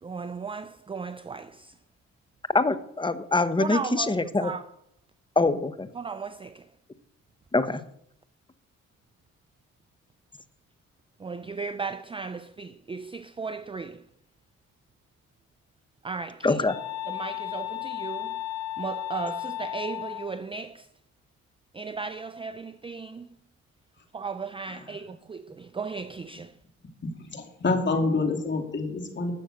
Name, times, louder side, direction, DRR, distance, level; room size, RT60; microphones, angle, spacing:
voice 1, 0.0-1.7 3.6-4.7 5.9-6.7 11.2-14.1 16.0-16.6 17.1-18.4 18.8-20.9 21.7-23.4 24.1-26.6, right 5 dB, 20° right, 0.5 m, -36 dB
voice 2, 2.5-4.5 5.4-5.9 7.5-7.8 16.4-16.7, left 3 dB, 15° left, 1.0 m, -24 dB
sound 1, 16.7-20.3, left 14 dB, 65° left, 1.4 m, -34 dB
voice 3, 27.3-29.3, left 3 dB, 35° left, 2.8 m, -27 dB
12.5 x 6.5 x 7.9 m
cardioid pair, 90°, 30 cm